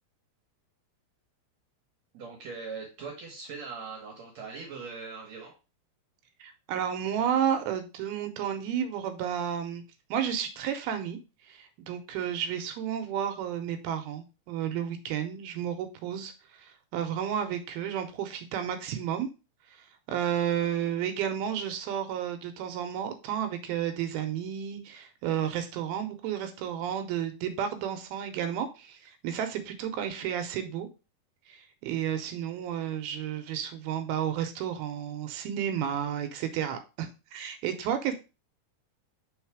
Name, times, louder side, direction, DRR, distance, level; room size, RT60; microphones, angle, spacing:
voice 1, 2.1-5.5, right 4 dB, 60° right, 1.9 m, -41 dB
voice 2, 6.4-9.8 10.1-11.2 11.5-19.3 19.7-30.9 31.5-38.1, right 9 dB, 80° right, 2.5 m, -32 dB
5.6 x 3.9 x 4.7 m
omnidirectional pair, 4.5 m